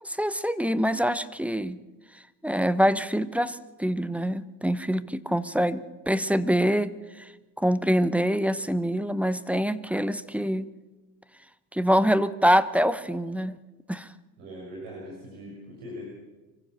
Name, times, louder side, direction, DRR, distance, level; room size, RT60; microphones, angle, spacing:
voice 1, 0.0-1.8 2.4-7.3 7.6-10.6 11.7-13.6 13.9-14.1, equal, 5° right, 15 dB, 0.9 m, -25 dB
voice 2, 14.4-16.1, equal, 70° right, -2 dB, 5.8 m, -41 dB
24.5 x 15.5 x 6.9 m, 1.2 s
hypercardioid pair, 75°, 49 cm